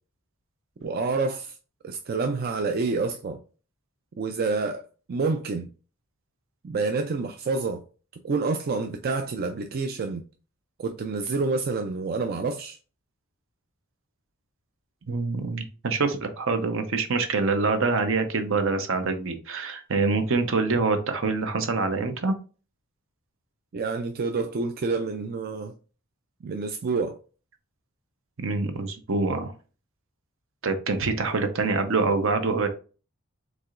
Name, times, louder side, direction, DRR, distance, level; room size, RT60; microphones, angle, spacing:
voice 1, 0.8-1.6 1.8-3.4 4.2-4.8 5.1-5.7 6.6-7.8 8.2-10.2 10.8-12.8 23.7-25.7 26.4-27.2, right 4 dB, 45° right, 0.4 m, -28 dB
voice 2, 15.1-22.3 28.4-29.5 30.6-32.7, right 3 dB, 65° right, 0.8 m, -25 dB
4.8 x 3.7 x 2.5 m
head